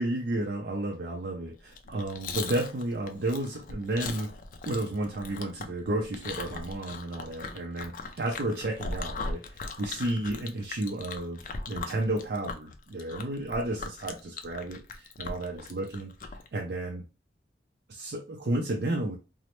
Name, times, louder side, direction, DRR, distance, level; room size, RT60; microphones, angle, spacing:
voice 1, 0.0-4.3 4.7-16.1 16.5-17.0 17.9-19.2, right 1 dB, 60° right, 0.4 m, -32 dB
Chewing mastication, 1.7-16.5, left 4 dB, 50° left, 0.4 m, -39 dB
3.1 x 2.0 x 2.9 m
head